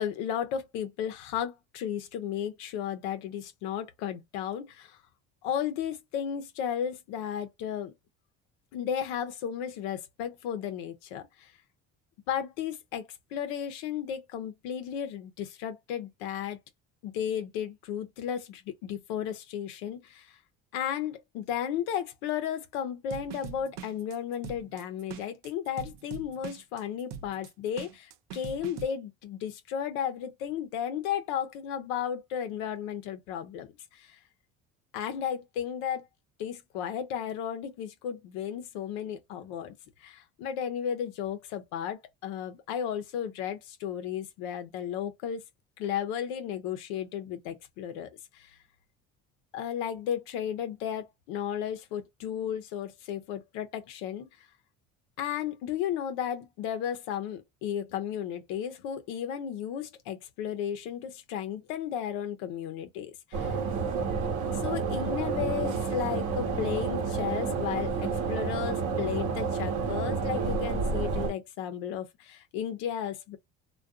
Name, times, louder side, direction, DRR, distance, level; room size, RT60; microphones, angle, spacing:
voice 1, 0.0-5.0 5.4-7.9 8.7-11.5 12.3-16.6 17.0-20.4 20.7-34.2 34.9-36.1 36.4-39.7 40.0-45.4 45.8-48.5 49.5-54.3 55.2-63.6 64.5-73.4, left 9 dB, 85° left, 0.6 m, -34 dB
sound 1, 23.1-28.9, right 9 dB, 85° right, 0.5 m, -42 dB
sound 2, 63.3-71.3, right 5 dB, 60° right, 0.9 m, -30 dB
2.4 x 2.2 x 2.3 m
supercardioid pair, 85°, 34 cm